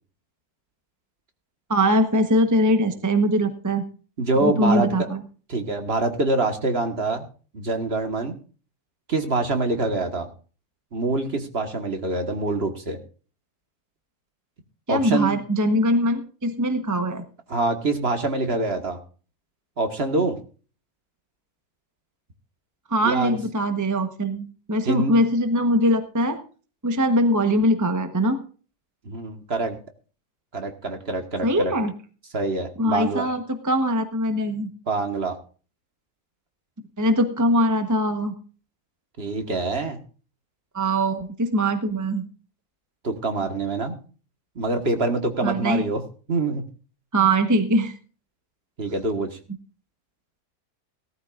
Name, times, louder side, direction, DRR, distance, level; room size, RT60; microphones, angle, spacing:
voice 1, 1.7-3.8 4.4-5.2 14.9-17.2 22.9-26.4 26.8-28.4 31.4-31.9 32.8-34.7 37.0-38.3 40.7-42.2 45.4-45.8 47.1-47.9, equal, 15° right, 7 dB, 0.9 m, -22 dB
voice 2, 4.2-4.9 5.5-7.2 7.5-8.4 9.1-10.3 10.9-13.0 14.9-15.4 17.5-19.0 19.8-20.4 23.0-23.4 24.9-25.1 29.1-29.8 30.5-31.7 32.3-33.3 34.9-35.3 39.2-40.0 43.0-44.0 44.6-46.0 46.3-46.6 48.8-49.4, right 3 dB, 45° right, 6 dB, 1.7 m, -25 dB
18.5 x 13.0 x 2.5 m, 0.38 s
omnidirectional pair, 1.6 m